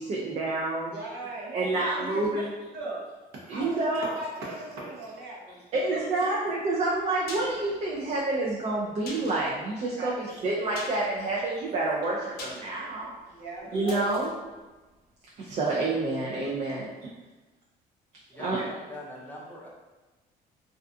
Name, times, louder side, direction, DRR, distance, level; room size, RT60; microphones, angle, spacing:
voice 1, 0.0-0.9 1.5-2.5 3.5-4.1 5.7-13.1 13.7-14.4 15.4-17.1 18.4-18.6, right 2 dB, 40° right, -4 dB, 0.4 m, -28 dB
voice 2, 0.9-2.4 2.7-5.6 5.9-6.3 9.9-10.1 11.6-11.7 13.3-13.7, right 2 dB, 70° right, -4 dB, 0.8 m, -39 dB
sound 1, 6.9-15.7 16.0-16.1, left 2 dB, 65° left, 0.6 m, -46 dB
voice 3, 18.3-19.7, left 1 dB, 10° left, -5 dB, 0.5 m, -42 dB
2.3 x 2.3 x 2.5 m, 1.2 s
cardioid pair, 110°, 17 cm